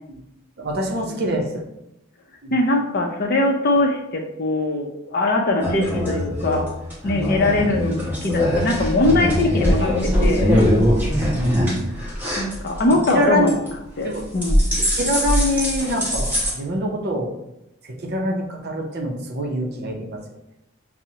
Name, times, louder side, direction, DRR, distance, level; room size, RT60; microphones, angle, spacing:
voice 1, 0.6-1.7 2.4-2.6 11.3-12.0 13.1-13.5 14.0-14.2 14.7-17.3 17.8-20.2, equal, 50° right, 1 dB, 0.6 m, -25 dB
voice 2, 2.5-6.6 7.0-10.6 12.4-13.5 14.0-14.6, left 2 dB, 45° left, 2 dB, 0.5 m, -21 dB
sound 1, 5.6-13.1 13.5-13.8 14.1-16.5, equal, 10° right, 0.9 m, -21 dB
5.7 x 2.0 x 2.7 m, 0.87 s
head